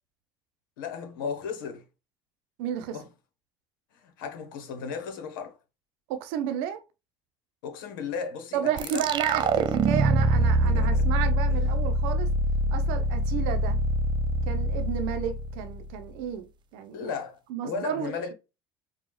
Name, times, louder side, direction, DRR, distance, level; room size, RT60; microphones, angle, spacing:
voice 1, 0.8-1.8 2.9-3.1 3.9-5.6 7.6-9.0 10.6-11.0 11.5-11.6 16.9-18.3, left 5 dB, 85° left, 1.0 m, -35 dB
voice 2, 2.6-3.0 6.1-6.8 8.5-12.3 12.7-13.8 14.5-17.1 17.5-18.3, right 9 dB, 75° right, 0.7 m, -32 dB
sound 1, 8.8-16.1, right 1 dB, 45° right, 0.5 m, -25 dB
4.7 x 2.3 x 3.0 m
hypercardioid pair, 70°, 11 cm